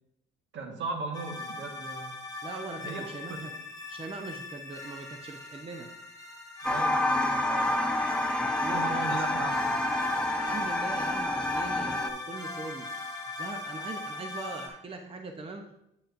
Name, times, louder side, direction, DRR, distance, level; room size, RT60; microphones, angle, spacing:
voice 1, 0.5-2.1 2.8-3.5 6.6-7.7 8.7-9.8 10.5-10.6, right 3 dB, 70° right, 2 dB, 1.6 m, -38 dB
sound 1, 1.1-14.7, left 2 dB, 20° left, 2.1 m, -39 dB
voice 2, 2.4-3.5 3.9-5.9 8.4-9.4 10.4-12.9 13.4-15.7, right 3 dB, 30° right, 4 dB, 0.7 m, -41 dB
sound 2, 6.6-12.1, left 1 dB, 5° left, 0.8 m, -28 dB
8.9 x 6.8 x 2.6 m, 0.81 s
cardioid pair, 90°, 20 cm